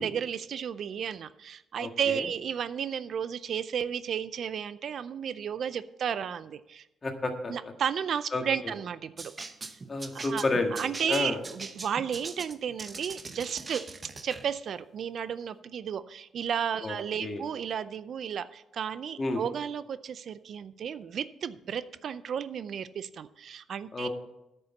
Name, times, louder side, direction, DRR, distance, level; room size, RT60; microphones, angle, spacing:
voice 1, 0.0-6.8 7.5-9.3 9.7-9.8 10.2-24.1, right 8 dB, 60° right, 15 dB, 0.4 m, -33 dB
voice 2, 1.8-2.3 7.0-7.5 8.3-8.4 9.9-11.4 16.8-17.4 19.2-19.4 23.9-24.1, left 2 dB, 30° left, 4 dB, 1.7 m, -31 dB
sound 1, 9.2-14.5, right 3 dB, 30° right, 0.8 m, -41 dB
9.5 x 6.8 x 7.0 m, 0.89 s
cardioid pair, 90°, 0 cm